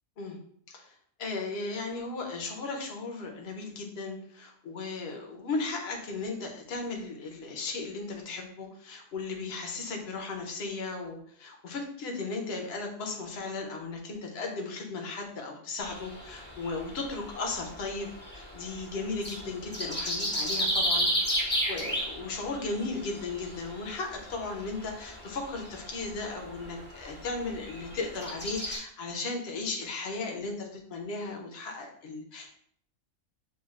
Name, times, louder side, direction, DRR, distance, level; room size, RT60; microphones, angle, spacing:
voice 1, 0.7-21.4 21.7-32.5, left 3 dB, 55° left, 2 dB, 1.0 m, -36 dB
sound 1, 15.8-28.8, equal, 10° left, 0.8 m, -34 dB
7.1 x 2.4 x 2.4 m, 0.65 s
omnidirectional pair, 1.4 m